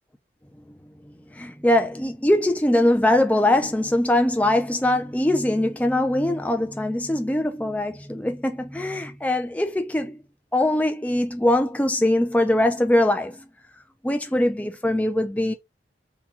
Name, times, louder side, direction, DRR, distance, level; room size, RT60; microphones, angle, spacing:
voice 1, 1.0-10.2 10.5-13.5 14.0-15.5, left 1 dB, 10° left, 0.4 m, -22 dB
3.7 x 2.3 x 2.8 m
head